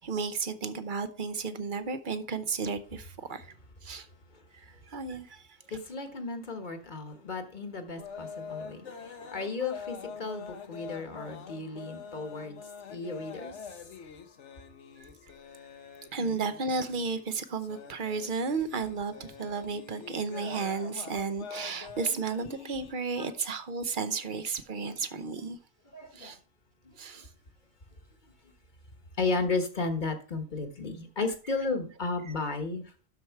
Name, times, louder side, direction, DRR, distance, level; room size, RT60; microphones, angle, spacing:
voice 1, 0.0-3.5 3.8-4.1 4.5-5.8 15.0-15.1 16.1-25.6 26.1-26.4 27.0-27.3, right 4 dB, 50° right, 0.9 m, -33 dB
voice 2, 5.7-12.6 12.9-13.6 16.2-16.3 24.8-24.9 25.9-26.3 29.2-32.8, left 3 dB, 45° left, 1.3 m, -34 dB
sound 1, 8.0-22.9, left 6 dB, 80° left, 1.3 m, -45 dB
12.0 x 4.6 x 4.6 m
omnidirectional pair, 1.2 m